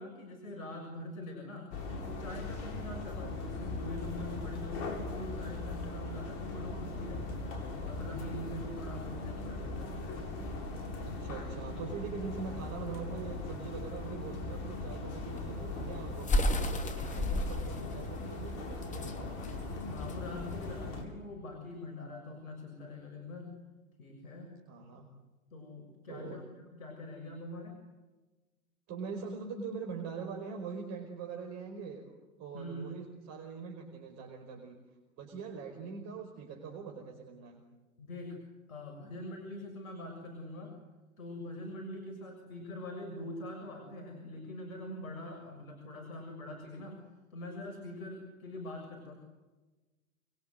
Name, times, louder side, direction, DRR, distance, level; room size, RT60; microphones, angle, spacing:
voice 1, 0.0-10.0 19.9-23.5 24.0-24.5 25.5-26.4 26.7-27.8 32.5-32.9 38.0-38.4 38.7-40.8 41.2-49.1, left 1 dB, 70° left, 4 dB, 7.0 m, -44 dB
sound 1, 1.7-21.0, left 2 dB, 50° left, 7.8 m, -39 dB
voice 2, 11.0-19.6 24.7-25.1 26.1-26.4 28.9-32.1 32.4-34.8 35.2-37.6, right 5 dB, 40° right, 2 dB, 5.3 m, -43 dB
sound 2, 15.2-20.8, left 1 dB, 15° left, 2.9 m, -33 dB
29.0 x 23.0 x 8.0 m, 1.2 s
hypercardioid pair, 100°, 42 cm